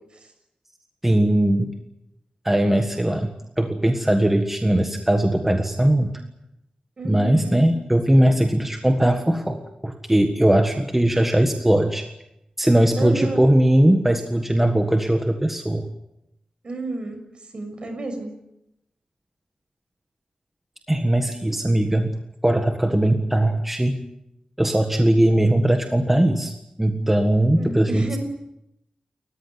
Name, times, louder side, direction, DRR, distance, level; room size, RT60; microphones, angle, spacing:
voice 1, 1.0-1.7 2.4-6.1 7.0-12.1 12.6-15.9 20.9-22.1 22.4-24.0 24.6-28.2, right 1 dB, 10° right, 5 dB, 1.6 m, -20 dB
voice 2, 7.0-7.6 13.0-13.4 16.6-18.3 27.6-28.2, right 2 dB, 45° right, 6 dB, 6.3 m, -31 dB
30.0 x 14.5 x 9.6 m, 0.86 s
wide cardioid pair, 155°, 2 cm